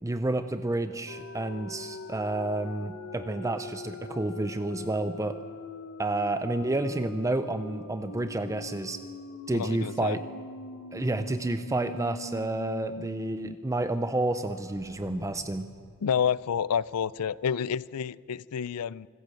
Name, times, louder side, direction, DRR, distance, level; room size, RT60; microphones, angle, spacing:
voice 1, 0.0-5.4 6.0-9.0 9.5-10.2 10.9-15.7, right 2 dB, 15° right, 10 dB, 0.5 m, -30 dB
sound 1, 1.1-13.5 13.9-14.0 14.4-17.0, left 2 dB, 60° left, 1.1 m, -43 dB
voice 2, 9.5-10.2 16.0-19.1, left 7 dB, 85° left, 21 dB, 0.4 m, -29 dB
25.5 x 15.0 x 7.7 m, 2.1 s
head